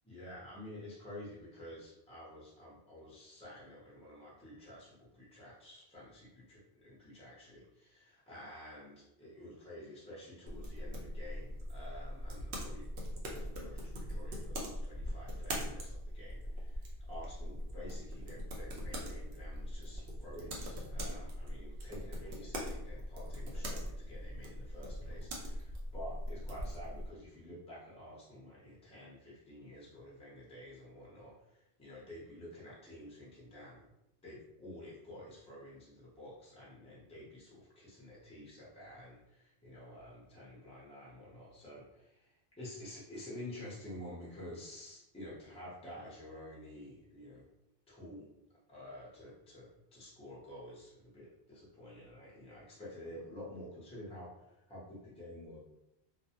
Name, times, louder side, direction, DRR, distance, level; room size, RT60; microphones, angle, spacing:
voice 1, 0.0-13.0 13.3-33.8 34.2-47.5 47.9-48.3 48.7-55.6, left 1 dB, 5° left, -6 dB, 0.6 m, -50 dB
sound 1, 10.5-27.1, equal, 80° right, 0.9 m, -41 dB
2.4 x 2.1 x 2.8 m, 0.86 s
omnidirectional pair, 1.1 m